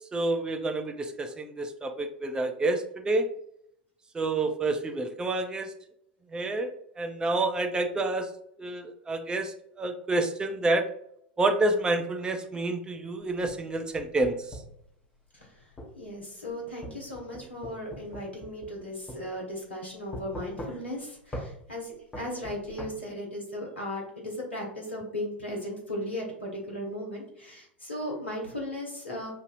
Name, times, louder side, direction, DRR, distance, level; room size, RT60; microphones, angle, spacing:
voice 1, 0.1-3.3 4.1-5.7 6.3-6.7 7.0-8.3 8.6-10.8 11.4-14.6, right 2 dB, 15° right, 5 dB, 0.5 m, -28 dB
sound 1, 13.2-14.8 15.8-16.0 16.8-18.8 19.1-19.2 20.1-21.0 21.3-21.5 22.1-22.9, equal, 20° left, 1.0 m, -40 dB
voice 2, 16.0-29.3, left 1 dB, 85° left, -2 dB, 1.4 m, -36 dB
6.1 x 2.7 x 2.5 m, 0.70 s
figure-of-eight pair, 85°, 6 cm